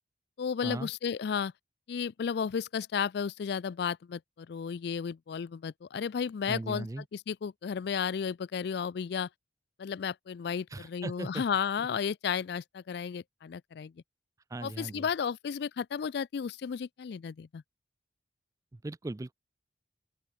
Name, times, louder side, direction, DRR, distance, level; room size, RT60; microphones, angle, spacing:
voice 1, 0.4-1.5 1.9-6.9 7.1-9.3 9.8-13.9 14.6-17.6, left 6 dB, 65° left, 0.4 m, -33 dB
voice 2, 6.5-7.1 10.7-11.4 11.8-11.9 14.5-15.1 18.7-19.3, right 2 dB, 20° right, 0.4 m, -38 dB
open air
head